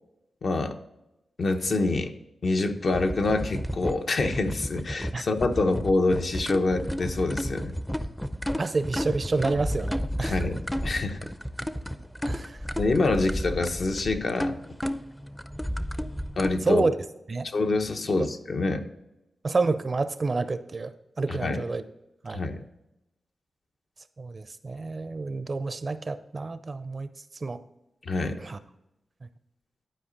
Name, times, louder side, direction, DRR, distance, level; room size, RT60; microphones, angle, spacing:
voice 1, 0.4-0.8 1.4-2.1 2.4-7.7 10.2-11.2 12.8-14.6 16.4-16.8 17.4-18.8 21.3-21.6 22.3-22.6 28.0-28.4, left 3 dB, 60° left, 5 dB, 0.8 m, -26 dB
sound 1, 2.9-16.5, equal, 5° left, 0.5 m, -32 dB
voice 2, 8.6-10.4 12.2-12.6 16.7-17.0 17.3-17.5 19.4-20.9 21.2-21.8 22.2-22.4 24.2-27.1 27.4-27.6 28.4-28.6, right 3 dB, 40° right, 12 dB, 0.5 m, -28 dB
11.0 x 4.8 x 3.9 m, 0.92 s
cardioid pair, 85°, 0 cm